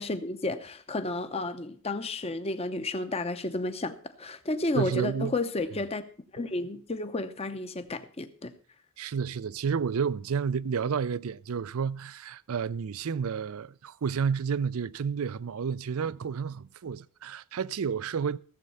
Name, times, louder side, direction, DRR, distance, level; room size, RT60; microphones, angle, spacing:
voice 1, 0.0-6.0 6.3-8.5, left 2 dB, 30° left, 0.7 m, -32 dB
voice 2, 4.8-5.3 9.0-18.4, right 6 dB, 75° right, 0.5 m, -30 dB
15.0 x 7.5 x 5.5 m
head